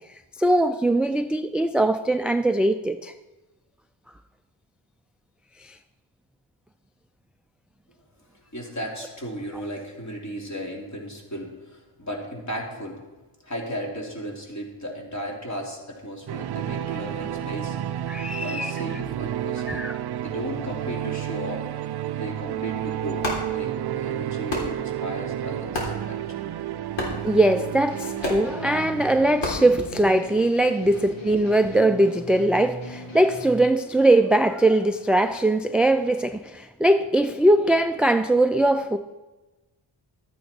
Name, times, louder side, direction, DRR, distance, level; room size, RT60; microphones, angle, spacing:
voice 1, 0.4-3.1 5.6-5.8 18.1-18.7 19.7-20.0 27.2-39.0, right 1 dB, ahead, 9 dB, 0.3 m, -21 dB
voice 2, 8.5-13.0 13.4-17.8 18.4-19.9 20.1-21.6 22.2-23.3 23.5-24.6 25.0-26.2 30.8-30.9, equal, 35° left, -1 dB, 3.1 m, -35 dB
sound 1, 16.3-29.5, right 11 dB, 60° right, 0.5 m, -31 dB
sound 2, 23.1-30.5, left 2 dB, 70° left, 3.6 m, -35 dB
sound 3, 27.9-33.6, left 1 dB, 90° left, 2.9 m, -40 dB
13.0 x 9.4 x 4.4 m, 1.1 s
wide cardioid pair, 95°, 46 cm